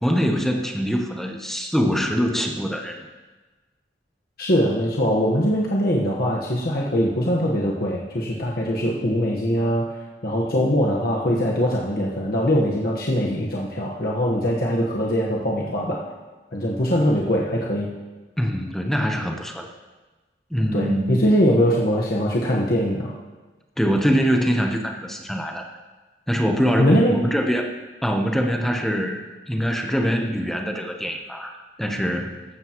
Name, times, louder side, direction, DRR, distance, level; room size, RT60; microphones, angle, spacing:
voice 1, 0.0-3.1 18.4-19.7 20.5-21.2 23.8-25.6 26.3-27.7 28.0-31.5 31.8-32.4, equal, ahead, 2 dB, 0.8 m, -23 dB
voice 2, 4.4-9.9 10.2-16.0 16.5-17.9 20.7-23.1 26.8-27.2, equal, 55° left, -3 dB, 1.2 m, -22 dB
15.0 x 12.0 x 3.0 m, 1.2 s
head